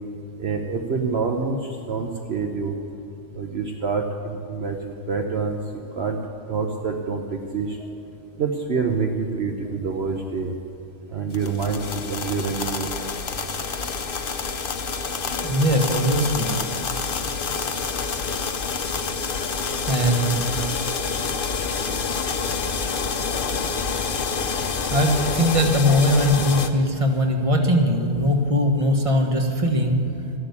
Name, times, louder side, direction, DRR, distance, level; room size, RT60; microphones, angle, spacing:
voice 1, 0.4-1.6 1.9-2.7 3.4-5.6 6.0-6.2 6.5-7.8 8.4-10.5 11.1-11.8 12.1-12.9, right 5 dB, 60° right, 2 dB, 1.2 m, -26 dB
sound 1, 11.3-26.7, left 5 dB, 50° left, 1.0 m, -27 dB
voice 2, 15.4-16.6 19.9-20.7 24.9-30.1, equal, 25° right, 3 dB, 1.5 m, -20 dB
13.5 x 11.5 x 8.2 m, 2.7 s
omnidirectional pair, 1.3 m